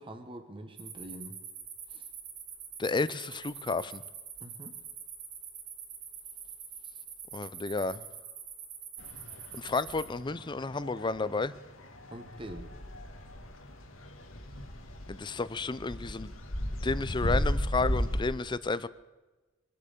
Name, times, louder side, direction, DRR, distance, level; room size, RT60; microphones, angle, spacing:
voice 1, 0.0-1.4 1.9-2.1 4.4-4.8 12.1-12.7, right 1 dB, 25° right, 6 dB, 1.3 m, -45 dB
sound 1, 0.8-10.1, right 7 dB, 55° right, 2.7 m, -45 dB
voice 2, 2.8-4.0 7.3-8.0 9.5-11.5 15.1-16.3 16.8-18.9, left 3 dB, 25° left, 17 dB, 0.5 m, -31 dB
sound 2, 9.0-18.2, equal, 80° left, 1.8 m, -36 dB
24.0 x 8.6 x 6.7 m, 1.2 s
head